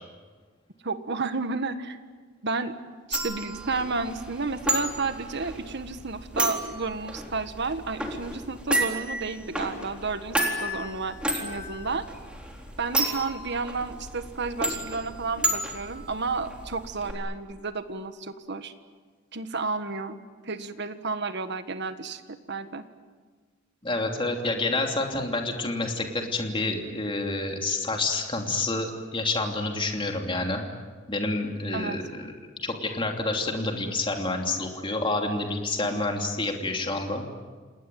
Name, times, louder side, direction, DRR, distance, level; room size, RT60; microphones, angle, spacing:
voice 1, 0.8-2.0 2.4-2.7 3.1-10.3 10.6-12.0 12.8-18.7 19.3-20.2 20.4-22.8 31.7-32.0 35.8-36.0, right 4 dB, 60° right, 10 dB, 1.6 m, -31 dB
sound 1, 3.1-17.1, right 1 dB, 5° right, 3.9 m, -32 dB
voice 2, 23.8-30.6 31.1-32.3 32.6-37.2, left 2 dB, 25° left, 3 dB, 3.0 m, -28 dB
28.5 x 19.5 x 9.3 m, 1.5 s
head